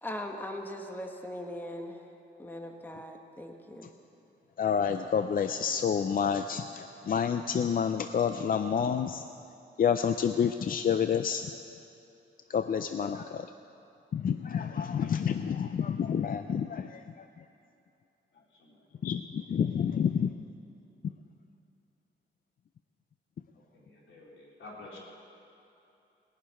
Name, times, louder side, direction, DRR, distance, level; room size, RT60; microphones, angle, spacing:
voice 1, 0.0-2.1 2.4-3.9, left 1 dB, 10° left, 3 dB, 1.2 m, -40 dB
voice 2, 4.6-9.3 9.8-11.5 12.5-13.5 14.1-17.4 19.0-20.3, left 7 dB, 50° left, 9 dB, 0.5 m, -29 dB
voice 3, 23.7-25.0, left 2 dB, 85° left, -5 dB, 3.9 m, -49 dB
18.5 x 6.8 x 9.5 m, 2.8 s
cardioid pair, 100°, 19 cm